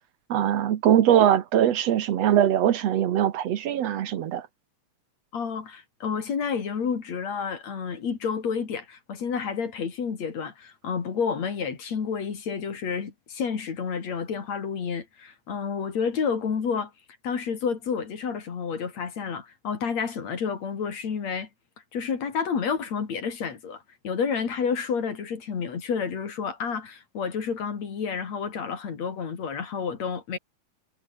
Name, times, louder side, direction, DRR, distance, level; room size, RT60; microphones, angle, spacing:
voice 1, 0.3-4.5, right 10 dB, 60° right, 2.0 m, -21 dB
voice 2, 5.3-16.9 17.2-21.5 21.9-30.4, left 6 dB, 50° left, 3.9 m, -30 dB
omnidirectional pair, 4.0 m